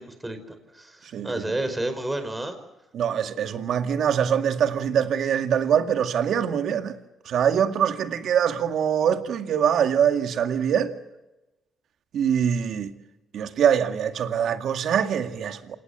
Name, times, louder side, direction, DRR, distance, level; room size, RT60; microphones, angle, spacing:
voice 1, 0.0-2.6, right 1 dB, 15° right, 4.9 m, -31 dB
voice 2, 1.1-1.4 2.9-7.0 7.3-10.9 12.1-12.9 13.3-15.8, right 8 dB, 70° right, 2.1 m, -23 dB
28.0 x 18.5 x 8.2 m
cardioid pair, 90°, 0 cm